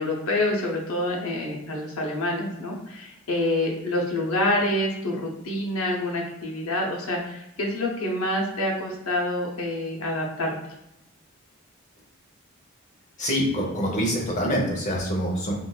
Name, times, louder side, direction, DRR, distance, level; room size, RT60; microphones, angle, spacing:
voice 1, 0.0-10.5, left 1 dB, 90° left, -1 dB, 0.7 m, -27 dB
voice 2, 13.2-15.5, equal, 35° left, -2 dB, 0.8 m, -25 dB
3.7 x 2.4 x 2.3 m, 0.85 s
head